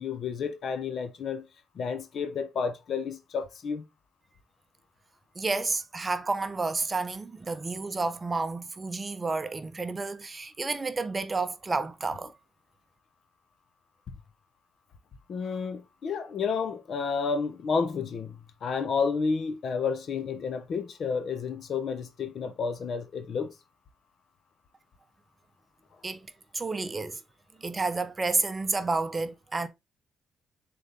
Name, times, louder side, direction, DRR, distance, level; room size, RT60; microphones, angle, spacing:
voice 1, 0.0-1.5 1.7-3.8 15.3-23.5, left 5 dB, 55° left, 1.1 m, -31 dB
voice 2, 5.4-12.3 26.0-26.3 26.5-27.2 27.6-29.7, right 3 dB, 25° right, 0.8 m, -30 dB
6.8 x 3.9 x 3.6 m
cardioid pair, 90°, 0 cm